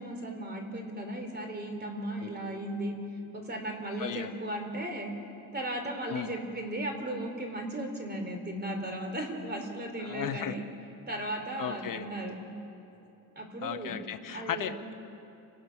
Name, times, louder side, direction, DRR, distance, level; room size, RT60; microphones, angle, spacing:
voice 1, 0.0-2.9 3.3-5.1 5.5-10.6 11.1-12.4 13.4-13.9 14.3-14.7, right 1 dB, 25° right, 4 dB, 3.4 m, -36 dB
voice 2, 4.0-4.3 6.1-6.3 10.0-10.5 11.6-12.1 13.6-14.9, left 9 dB, 55° left, 9 dB, 1.0 m, -35 dB
30.0 x 20.0 x 5.9 m, 2.8 s
cardioid pair, 125°, 38 cm